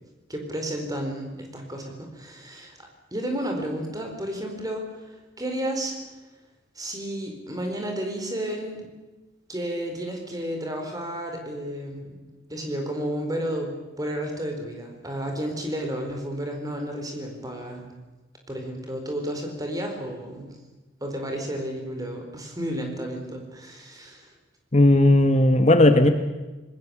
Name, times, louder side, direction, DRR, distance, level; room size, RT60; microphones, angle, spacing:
voice 1, 0.3-5.9 6.7-8.9 9.5-13.7 14.0-17.8 18.5-20.6 21.0-24.3, right 1 dB, 20° right, 3 dB, 4.5 m, -32 dB
voice 2, 24.7-26.1, left 1 dB, 35° left, 8 dB, 1.2 m, -16 dB
27.0 x 20.0 x 7.2 m, 1.2 s
head